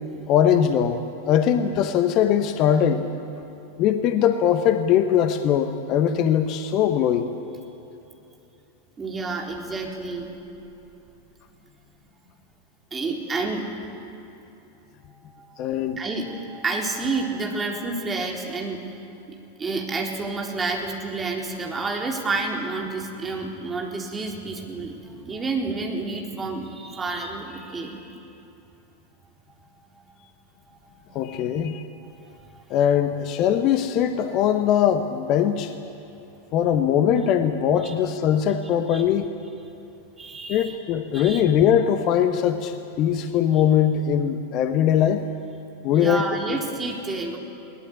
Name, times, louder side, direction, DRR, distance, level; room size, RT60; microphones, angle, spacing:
voice 1, 0.3-3.1 3.8-7.3 15.6-16.0 31.1-31.8 32.7-35.7 36.5-39.3 40.5-45.2 45.8-46.2, left 9 dB, 40° left, 8 dB, 1.2 m, -21 dB
voice 2, 9.0-10.3 12.9-13.7 15.1-18.9 19.6-28.1 29.5-29.7 30.0-30.2 30.7-31.3 31.9-32.9 37.8-37.9 38.9-39.0 40.2-40.8 41.1-41.4 45.9-47.4, right 3 dB, 15° right, 0 dB, 3.9 m, -30 dB
21.5 x 19.5 x 9.6 m, 3.0 s
figure-of-eight pair, 90°, 0 cm